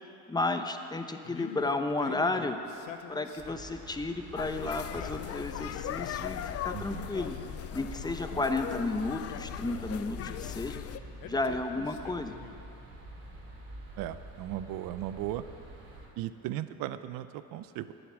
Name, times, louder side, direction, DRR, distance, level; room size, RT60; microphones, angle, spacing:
voice 1, 0.3-2.6 3.1-7.4 7.7-10.8 11.2-12.3, left 2 dB, 10° left, 7 dB, 0.7 m, -32 dB
Male speech man speaking, 1.2-3.8 4.8-6.5 6.9-8.2 9.1-10.6 11.2-12.7, left 9 dB, 85° left, 0.8 m, -46 dB
sound 1, 3.4-16.1, right 2 dB, 45° right, 2.9 m, -47 dB
sound 2, 4.4-11.0, left 12 dB, 45° left, 0.4 m, -39 dB
voice 2, 6.7-7.1 8.3-8.4 14.0-15.4 16.2-17.9, right 13 dB, 90° right, 13 dB, 0.6 m, -37 dB
11.0 x 8.1 x 7.4 m, 2.7 s
cardioid pair, 100°, 33 cm